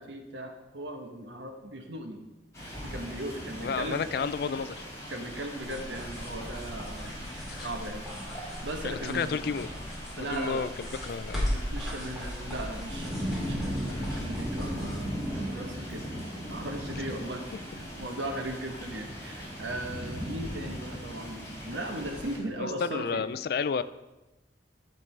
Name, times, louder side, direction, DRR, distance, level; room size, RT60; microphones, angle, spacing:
voice 1, 0.0-2.2 2.8-4.0 5.1-7.2 7.6-9.4 10.2-10.6 11.5-15.1 15.4-16.1 16.5-17.4 17.8-23.3, right 1 dB, 85° right, 4 dB, 1.0 m, -38 dB
sound 1, 2.5-22.4, equal, 20° left, 3.4 m, -38 dB
voice 2, 3.6-4.8 7.5-7.7 8.8-9.7 10.2-10.7 11.0-11.5 22.6-23.8, left 5 dB, 55° left, 13 dB, 0.3 m, -31 dB
sound 2, 5.5-15.3, equal, ahead, 2.7 m, -38 dB
10.5 x 6.6 x 3.3 m, 1.0 s
head